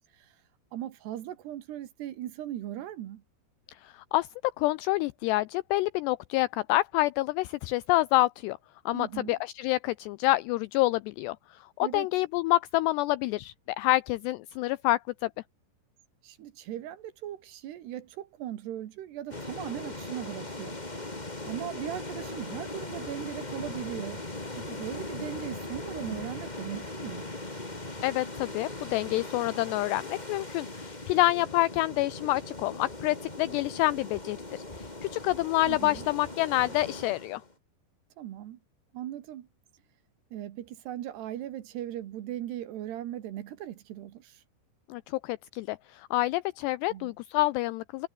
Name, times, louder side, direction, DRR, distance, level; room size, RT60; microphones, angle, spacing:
voice 1, 0.7-3.2 8.9-9.4 11.8-12.1 16.2-21.1 21.4-24.2 24.6-27.3 35.7-36.1 38.2-38.6 38.9-39.5 40.3-44.4 46.9-47.1, right 12 dB, 65° right, 3.4 m, -38 dB
voice 2, 3.8-4.3 4.6-8.6 8.9-11.4 11.8-15.3 28.0-37.4 44.9-48.1, left 18 dB, 90° left, 2.4 m, -27 dB
sound 1, 19.3-37.5, left 2 dB, 15° left, 1.9 m, -39 dB
omnidirectional pair, 5.5 m